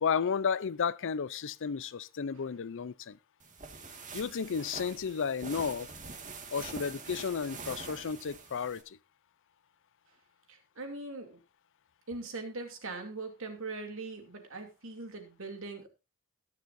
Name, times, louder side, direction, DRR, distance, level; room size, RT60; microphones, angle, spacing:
voice 1, 0.0-3.2 4.1-5.9 6.5-9.0, left 6 dB, 60° left, 0.5 m, -33 dB
sound 1, 3.4-8.8, right 4 dB, 35° right, 1.8 m, -45 dB
voice 2, 10.5-11.4 12.1-15.9, right 3 dB, 65° right, 2.8 m, -41 dB
21.5 x 7.3 x 2.6 m
head